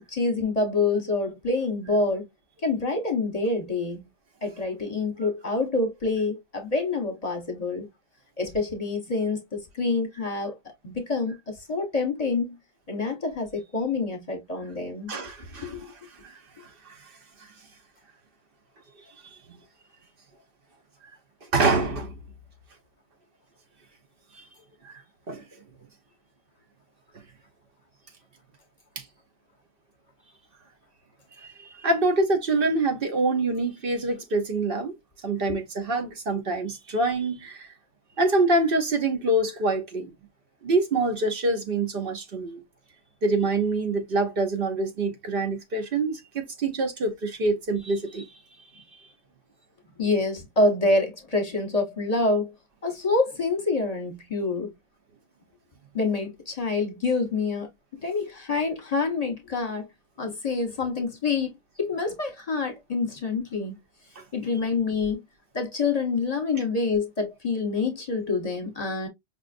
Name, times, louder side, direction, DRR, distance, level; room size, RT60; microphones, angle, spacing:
voice 1, 0.1-2.3 2.6-4.0 4.4-7.9 8.4-10.6 10.8-12.5 12.9-15.1 15.6-15.9 35.5-35.6 50.0-52.5 52.8-54.7 55.9-57.7 58.0-59.9 60.2-61.5 61.8-63.8 64.3-65.2 65.5-69.1, left 3 dB, 40° left, 0.9 m, -27 dB
voice 2, 15.1-15.8 16.2-17.1 19.2-19.3 21.5-22.1 24.3-24.4 24.8-24.9 25.3-25.4 29.0-29.1 31.4-34.9 35.2-37.7 38.2-40.1 40.6-42.6 43.2-48.3 48.8-48.9 64.2-64.3, right 2 dB, 60° right, 1.0 m, -26 dB
5.2 x 2.4 x 2.4 m
omnidirectional pair, 1.1 m